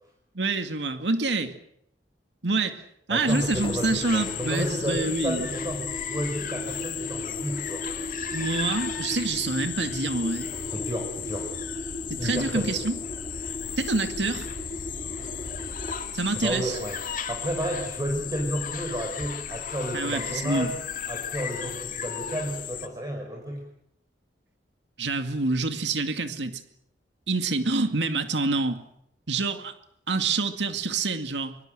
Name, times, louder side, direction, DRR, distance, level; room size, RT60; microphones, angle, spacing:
voice 1, 0.3-1.5 2.4-5.5 8.3-10.5 12.1-13.0 13.8-14.5 16.1-16.8 19.9-20.7 25.0-26.6 27.3-28.8 29.3-29.7 30.1-31.6, right 3 dB, 85° right, 8 dB, 2.2 m, -27 dB
voice 2, 3.1-7.8 10.7-11.5 12.2-12.7 16.3-17.0 17.3-20.8 21.1-23.6, equal, 20° right, 1 dB, 5.3 m, -31 dB
sound 1, 3.3-22.9, left 8 dB, 50° left, 2.2 m, -35 dB
Engine, 3.5-17.5, left 1 dB, 30° left, 3.6 m, -38 dB
24.5 x 24.0 x 7.9 m, 0.74 s
head